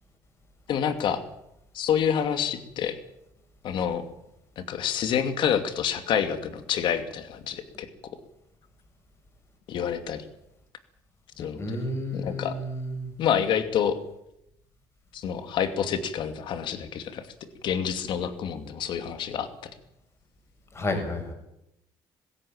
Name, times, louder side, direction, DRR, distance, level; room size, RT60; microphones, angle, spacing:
voice 1, 0.7-1.2 1.7-3.0 3.6-4.1 4.6-8.2 9.7-10.2 11.4-11.8 12.1-12.6 13.2-14.0 15.1-19.7, left 8 dB, 60° left, 9 dB, 2.6 m, -28 dB
voice 2, 11.6-13.1 20.7-21.3, left 1 dB, 30° left, 5 dB, 6.8 m, -31 dB
21.0 x 16.5 x 8.8 m, 0.82 s
cardioid pair, 115°, 9 cm